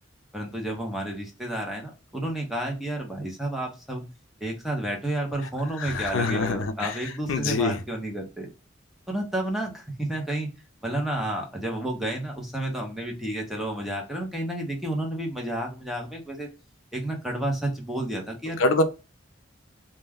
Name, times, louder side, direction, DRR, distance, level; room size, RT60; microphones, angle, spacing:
voice 1, 0.3-4.0 4.4-8.5 9.1-10.5 10.8-16.5 16.9-18.6, right 1 dB, ahead, 0.7 m, -31 dB
voice 2, 5.8-7.8 18.6-18.8, left 3 dB, 90° left, 0.5 m, -25 dB
2.3 x 2.1 x 3.4 m
head